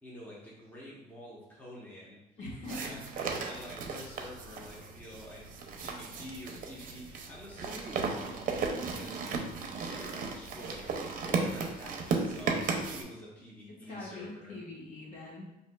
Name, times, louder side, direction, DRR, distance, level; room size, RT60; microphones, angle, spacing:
voice 1, 0.0-2.2 2.7-5.4 5.8-10.9 11.2-14.5, equal, 10° left, -5 dB, 0.8 m, -47 dB
voice 2, 2.4-3.3 13.9-15.5, left 2 dB, 45° left, -4 dB, 1.3 m, -43 dB
sound 1, 2.6-13.0, right 4 dB, 55° right, 0.6 m, -35 dB
5.4 x 2.6 x 2.2 m, 0.96 s
cardioid pair, 110°, 17 cm